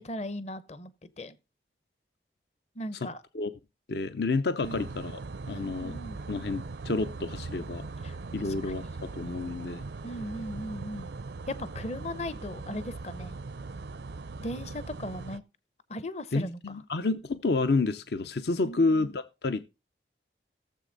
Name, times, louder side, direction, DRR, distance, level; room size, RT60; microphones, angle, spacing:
voice 1, 0.0-1.4 2.8-3.2 4.6-4.8 5.5-6.2 8.0-8.6 10.0-11.1 11.5-13.4 14.4-15.4 15.9-16.8 18.6-19.1, left 1 dB, 35° left, 0.7 m, -38 dB
voice 2, 3.9-5.2 5.5-6.0 6.3-7.8 8.3-9.8 16.3-19.6, left 3 dB, 70° left, 0.7 m, -29 dB
sound 1, 4.6-15.4, right 3 dB, 75° right, 0.5 m, -40 dB
16.5 x 7.4 x 3.9 m
head